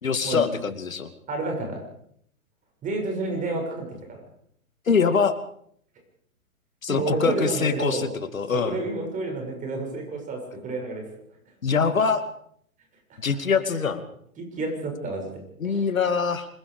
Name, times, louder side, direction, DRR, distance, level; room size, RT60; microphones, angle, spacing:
voice 1, 0.0-1.1 4.9-5.4 6.8-8.8 11.6-12.2 13.2-14.0 15.6-16.5, left 5 dB, 70° left, 10 dB, 2.5 m, -24 dB
voice 2, 1.3-1.8 2.8-4.2 6.9-8.1 8.5-11.0 13.1-13.2 14.4-15.8, right 2 dB, 20° right, 2 dB, 6.7 m, -30 dB
27.0 x 21.0 x 5.0 m, 0.66 s
figure-of-eight pair, 120°, 42 cm